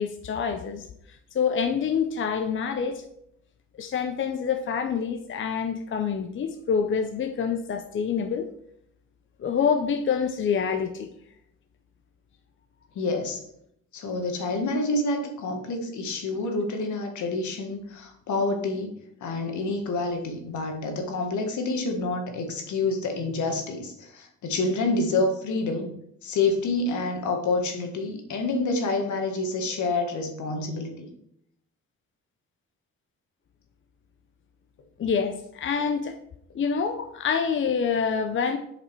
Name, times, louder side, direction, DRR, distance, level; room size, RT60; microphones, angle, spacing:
voice 1, 0.0-3.0 3.8-8.4 9.4-11.1 35.0-36.2 36.5-38.6, left 6 dB, 40° left, 6 dB, 0.7 m, -26 dB
voice 2, 12.9-13.4 13.9-18.9 19.2-25.9 26.2-31.1, left 3 dB, 75° left, 4 dB, 1.7 m, -28 dB
7.6 x 5.1 x 4.6 m, 0.73 s
cardioid pair, 90°, 30 cm